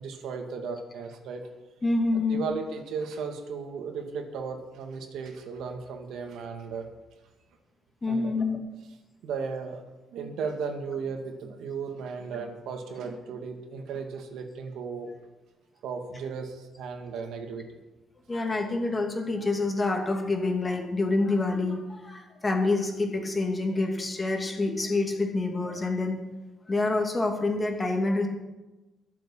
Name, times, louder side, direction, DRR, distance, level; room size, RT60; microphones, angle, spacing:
voice 1, 0.0-1.5 2.1-6.9 8.1-8.3 9.2-9.8 10.1-15.1 15.8-17.7, right 5 dB, 85° right, 4 dB, 2.4 m, -35 dB
voice 2, 1.8-2.4 8.0-8.6 18.3-26.2 26.7-28.3, left 3 dB, 20° left, 2 dB, 2.7 m, -27 dB
22.5 x 7.6 x 5.7 m, 1.1 s
cardioid pair, 140°, 0 cm